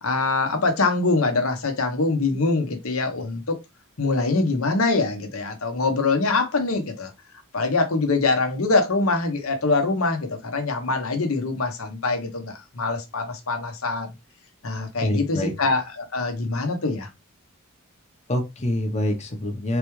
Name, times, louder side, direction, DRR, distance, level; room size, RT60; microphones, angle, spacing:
voice 1, 0.0-3.6 4.0-7.1 7.5-14.1 14.6-17.1, left 3 dB, 75° left, 1.1 m, -24 dB
voice 2, 15.0-15.5 18.3-19.8, left 1 dB, 30° left, 0.9 m, -25 dB
4.0 x 3.5 x 3.1 m
head